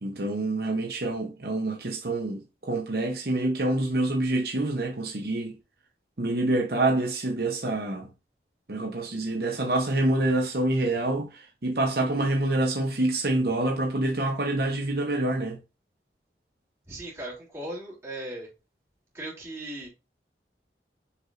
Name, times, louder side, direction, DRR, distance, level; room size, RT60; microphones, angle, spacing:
voice 1, 0.0-5.6 6.2-8.1 8.7-15.6, right 2 dB, 60° right, 1.0 m, -27 dB
voice 2, 16.9-18.5 19.1-19.9, right 1 dB, 15° right, 3.4 m, -37 dB
7.1 x 5.0 x 2.6 m
head